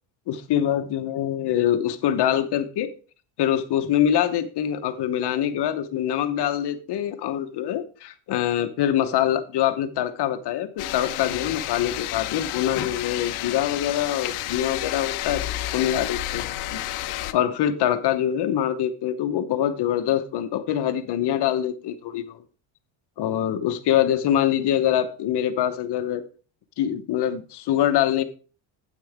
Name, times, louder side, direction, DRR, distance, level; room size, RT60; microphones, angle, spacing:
voice 1, 0.3-2.9 3.4-15.4 15.7-22.4 23.2-26.2 26.8-28.2, left 10 dB, 55° left, 10 dB, 1.0 m, -24 dB
sound 1, 10.8-17.3, left 15 dB, 85° left, 0.8 m, -31 dB
9.4 x 8.4 x 3.5 m, 0.37 s
cardioid pair, 150°, 49 cm